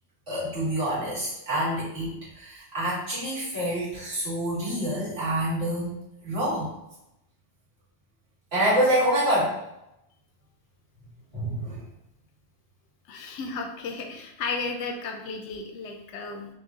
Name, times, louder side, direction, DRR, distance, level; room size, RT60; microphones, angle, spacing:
voice 1, 0.3-5.9 6.2-6.7 8.5-9.5 11.3-11.8, right 1 dB, 50° right, -8 dB, 2.1 m, -27 dB
voice 2, 13.1-16.5, left 4 dB, 70° left, 4 dB, 0.9 m, -34 dB
5.9 x 2.3 x 3.7 m, 0.86 s
omnidirectional pair, 1.3 m